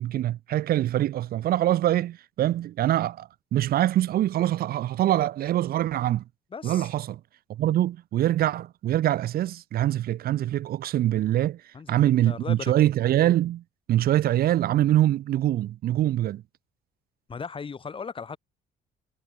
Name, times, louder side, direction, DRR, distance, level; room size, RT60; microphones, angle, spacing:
voice 1, 0.0-6.2 6.6-7.2 7.5-11.6 11.9-13.6 13.9-16.4, right 13 dB, 65° right, 1.3 m, -24 dB
voice 2, 6.5-6.9 11.7-11.9 12.3-12.9 17.3-18.4, left 5 dB, 30° left, 6.9 m, -37 dB
cardioid pair, 110°, 17 cm